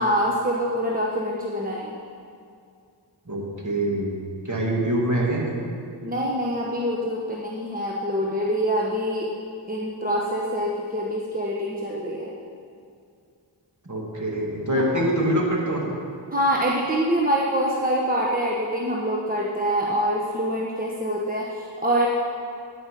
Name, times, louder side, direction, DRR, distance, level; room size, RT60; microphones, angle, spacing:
voice 1, 0.0-1.9 6.0-9.3 9.7-12.3 16.3-22.1, equal, 20° right, -3 dB, 1.1 m, -25 dB
voice 2, 3.3-4.1 4.5-5.5 13.9-16.0, right 1 dB, 40° right, -2 dB, 2.2 m, -24 dB
12.0 x 5.4 x 6.5 m, 2.4 s
wide cardioid pair, 40°, 44 cm